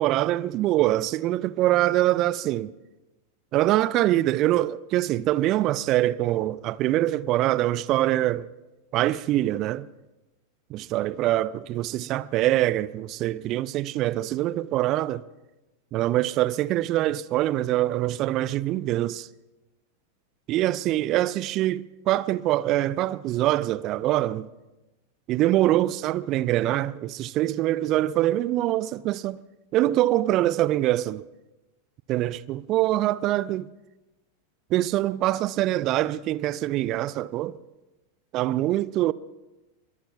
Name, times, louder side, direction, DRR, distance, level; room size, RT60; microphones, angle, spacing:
voice 1, 0.0-2.7 3.5-8.5 8.9-9.9 10.7-15.2 15.9-19.3 20.5-24.5 25.3-29.4 29.7-31.2 32.1-33.7 34.7-37.6 38.3-39.1, right 15 dB, 35° right, 0.5 m, -24 dB
25.0 x 23.0 x 2.4 m
figure-of-eight pair, 90°, 0 cm